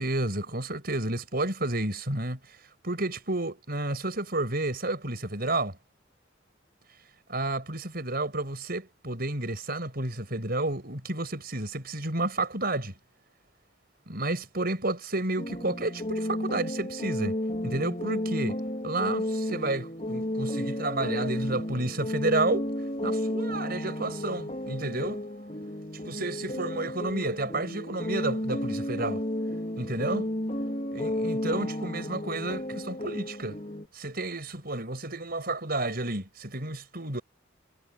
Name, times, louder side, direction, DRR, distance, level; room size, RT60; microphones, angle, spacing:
voice 1, 0.0-2.4 2.8-5.8 7.3-12.9 14.1-17.4 17.6-22.7 23.0-25.2 26.1-29.2 29.8-30.3 30.9-33.6 33.9-37.2, right 2 dB, 50° right, 6.3 m, -31 dB
sound 1, 15.4-33.9, left 1 dB, 35° left, 4.3 m, -32 dB
head